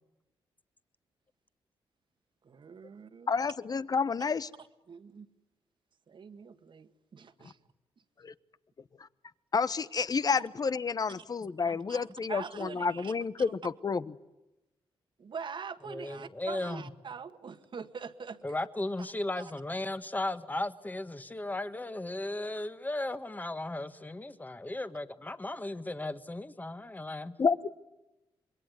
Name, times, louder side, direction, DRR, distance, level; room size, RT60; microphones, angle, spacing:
voice 1, 2.4-3.3 4.6-5.3 6.1-7.6 10.4-10.5 11.1-11.3 11.7-13.5 15.2-18.4 19.4-19.5, right 6 dB, 55° right, 10 dB, 1.8 m, -44 dB
voice 2, 3.3-4.5 8.2-8.3 9.5-14.0 27.4-27.7, left 5 dB, 40° left, 16 dB, 1.1 m, -30 dB
voice 3, 15.9-16.9 18.4-27.3, left 2 dB, 15° left, 11 dB, 1.7 m, -36 dB
26.0 x 22.0 x 9.5 m, 0.97 s
cardioid pair, 70°, 10 cm